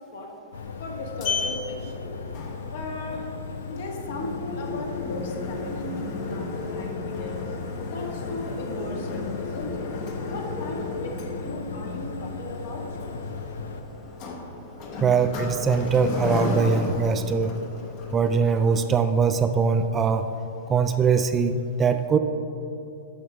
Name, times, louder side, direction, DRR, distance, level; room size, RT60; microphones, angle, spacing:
sound 1, 0.5-13.8, left 4 dB, 85° left, 0.5 m, -37 dB
Sliding door, 0.6-18.9, left 3 dB, 40° left, 1.0 m, -34 dB
voice 1, 0.8-2.1 2.7-3.2 3.7-7.3 7.8-9.9 10.3-12.8, left 2 dB, 60° left, 0 dB, 1.5 m, -36 dB
voice 2, 15.0-17.5 18.1-20.3 20.7-22.2, right 5 dB, 20° right, 8 dB, 0.3 m, -22 dB
8.4 x 5.4 x 4.4 m, 2.8 s
hypercardioid pair, 135°, 0 cm